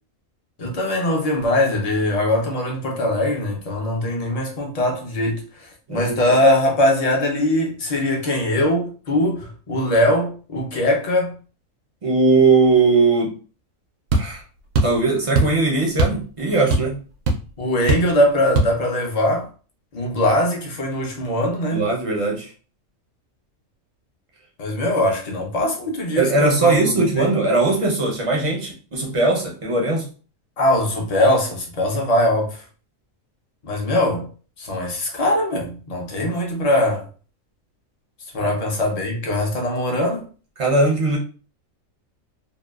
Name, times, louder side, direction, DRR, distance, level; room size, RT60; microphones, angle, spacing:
voice 1, 0.6-11.4 17.6-19.5 19.9-21.9 24.6-27.3 30.6-32.6 33.6-34.3 34.6-37.1 38.3-40.3, left 1 dB, 45° left, 0.5 m, -21 dB
voice 2, 12.0-13.3 14.1-14.4 14.8-17.0 21.7-22.5 26.1-30.1 38.4-38.5 40.6-41.2, right 3 dB, 45° right, 0.4 m, -19 dB
sound 1, 14.1-14.3 14.7-15.0 15.4-15.6 16.0-16.2 16.5-17.0 17.3-17.4 17.9-18.1 18.6-18.7, right 2 dB, 70° right, 0.9 m, -19 dB
2.8 x 2.2 x 2.3 m
omnidirectional pair, 1.5 m